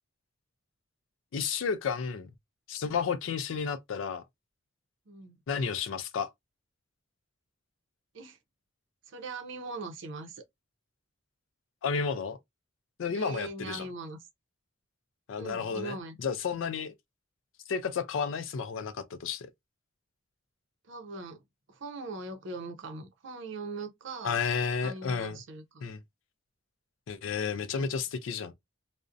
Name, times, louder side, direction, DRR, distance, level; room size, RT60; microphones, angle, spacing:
voice 1, 1.3-2.3 2.7-4.2 5.5-6.3 11.8-12.4 13.0-13.9 15.3-16.9 17.7-19.5 24.2-25.4 25.8-26.0 27.1-28.5, left 6 dB, 70° left, 0.4 m, -32 dB
voice 2, 5.1-5.4 8.1-8.4 9.1-10.4 13.1-14.2 15.4-16.2 20.9-21.4 21.7-24.4 24.8-25.9 27.7-27.9, right 3 dB, 65° right, 0.5 m, -41 dB
2.5 x 2.0 x 2.4 m
head